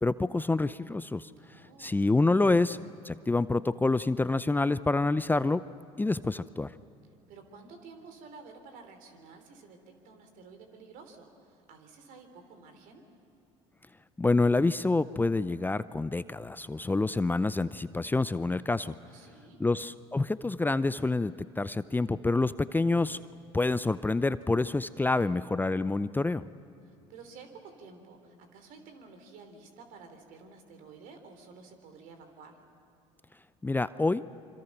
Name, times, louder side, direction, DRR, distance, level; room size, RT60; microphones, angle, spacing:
voice 1, 0.0-1.3 1.8-2.8 3.0-5.6 6.0-6.7 14.2-18.9 19.6-23.2 23.5-26.5 33.6-34.2, left 3 dB, 15° left, 15 dB, 0.5 m, -27 dB
voice 2, 1.4-2.0 7.3-13.1 19.0-19.6 25.0-25.4 26.8-32.6, right 4 dB, 70° right, 6 dB, 3.4 m, -51 dB
26.0 x 25.0 x 6.0 m, 2.7 s
hypercardioid pair, 70°, 15 cm